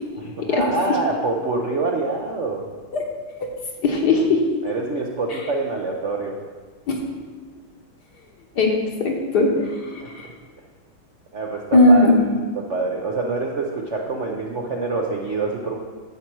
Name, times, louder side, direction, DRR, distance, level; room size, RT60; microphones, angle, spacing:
voice 1, 0.1-2.7 4.6-6.4 10.2-10.3 11.3-12.1 12.5-15.8, right 3 dB, 55° right, 0 dB, 0.8 m, -26 dB
voice 2, 3.8-4.4 5.3-5.4 6.9-7.0 8.6-8.7 9.0-10.3 11.7-12.2, left 2 dB, 55° left, 1 dB, 1.7 m, -18 dB
10.5 x 7.5 x 4.6 m, 1.4 s
omnidirectional pair, 2.2 m